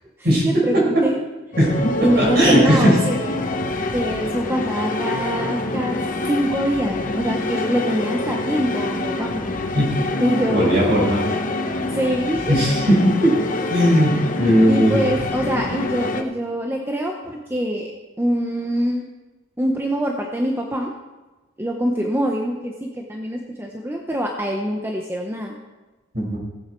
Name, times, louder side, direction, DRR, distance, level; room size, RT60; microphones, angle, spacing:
voice 1, 0.4-1.2 2.0-3.5 3.9-6.0 6.3-9.4 10.2-10.9 11.9-12.5 13.7-13.9 14.7-17.9 18.2-19.0 19.6-20.9 21.6-25.6, equal, 10° right, 1 dB, 0.8 m, -24 dB
sound 1, 1.5-16.2, left 2 dB, 40° left, 0.9 m, -26 dB
voice 2, 1.6-3.0 9.7-9.9 10.5-11.2 12.5-13.4 13.7-15.1 26.1-26.4, equal, 50° right, -3 dB, 5.2 m, -17 dB
17.5 x 8.1 x 4.5 m, 1.2 s
head